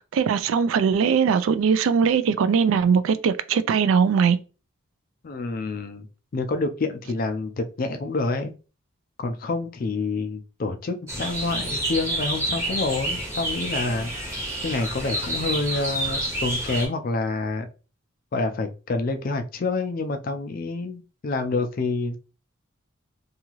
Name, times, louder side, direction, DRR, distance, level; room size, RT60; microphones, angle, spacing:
voice 1, 0.1-4.4, right 6 dB, 80° right, 0.3 m, -20 dB
voice 2, 5.2-6.1 6.3-8.5 9.2-14.1 14.6-17.7 18.3-22.2, left 3 dB, 45° left, 0.4 m, -27 dB
sound 1, 11.1-16.9, right 1 dB, 15° right, 0.9 m, -29 dB
2.7 x 2.4 x 2.9 m
head